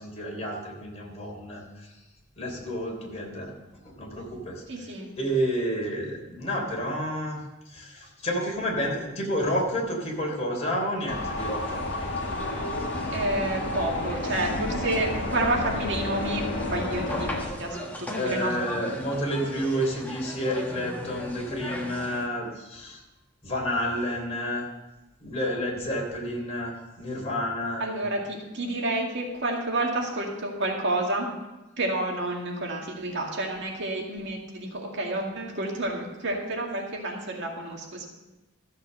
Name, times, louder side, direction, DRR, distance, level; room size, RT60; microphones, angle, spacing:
voice 1, 0.0-1.6 2.4-3.5 4.0-4.6 5.2-7.4 7.7-11.8 18.2-23.0 23.4-24.6 25.2-27.8, equal, 35° left, -1 dB, 3.5 m, -30 dB
voice 2, 4.7-5.2 13.1-18.6 27.8-31.3 31.8-38.1, right 2 dB, 60° right, 0 dB, 2.1 m, -30 dB
sound 1, 11.1-17.5, left 2 dB, 60° left, 2.0 m, -31 dB
sound 2, 11.4-22.3, left 1 dB, 10° left, 1.5 m, -38 dB
14.0 x 7.3 x 6.6 m, 1.0 s
head